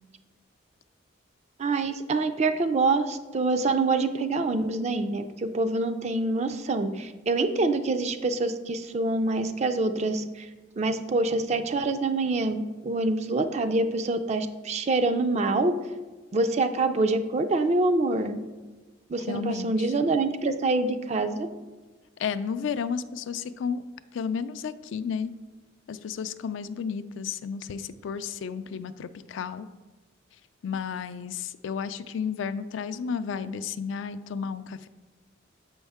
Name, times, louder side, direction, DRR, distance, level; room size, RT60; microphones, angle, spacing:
voice 1, 1.6-10.5 10.8-15.7 16.3-18.4 19.1-21.5, right 3 dB, 35° right, 8 dB, 0.4 m, -26 dB
voice 2, 19.3-19.9 22.2-23.8 24.1-25.3 25.9-29.7 30.6-34.9, left 6 dB, 70° left, 12 dB, 0.3 m, -32 dB
7.1 x 5.4 x 3.5 m, 1.2 s
head